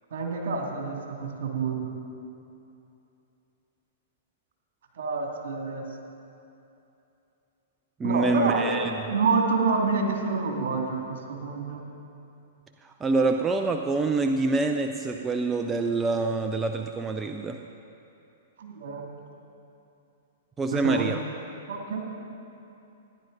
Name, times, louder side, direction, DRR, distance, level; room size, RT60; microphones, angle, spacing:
voice 1, 0.1-1.9 4.9-5.8 8.0-8.7 9.1-11.8 18.6-19.2 20.7-21.1 21.7-22.1, right 4 dB, 65° right, 1 dB, 2.2 m, -28 dB
voice 2, 8.0-8.9 13.0-17.6 20.6-21.2, right 3 dB, 15° right, 5 dB, 0.5 m, -26 dB
14.5 x 10.5 x 3.9 m, 2.8 s
hypercardioid pair, 115°, 0 cm